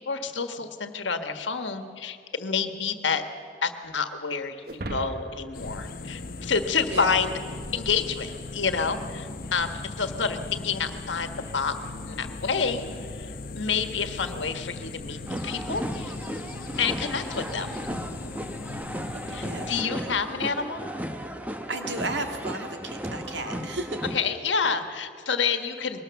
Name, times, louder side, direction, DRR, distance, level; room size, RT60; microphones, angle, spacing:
voice 1, 0.0-3.2 3.6-7.4 7.7-11.8 12.0-12.8 13.1-15.2 15.4-16.1 16.8-17.8 19.3-20.9 24.1-26.0, left 5 dB, 80° left, 8 dB, 1.4 m, -28 dB
sound 1, 4.6-7.2, right 1 dB, 50° right, 1.1 m, -39 dB
sound 2, 5.5-19.8, left 3 dB, 50° left, 0.8 m, -38 dB
sound 3, 15.3-24.2, equal, 10° right, 0.9 m, -35 dB
voice 2, 19.2-20.2 21.7-24.0 24.6-24.8, right 2 dB, 75° right, 5 dB, 1.9 m, -34 dB
21.5 x 18.5 x 7.0 m, 2.4 s
head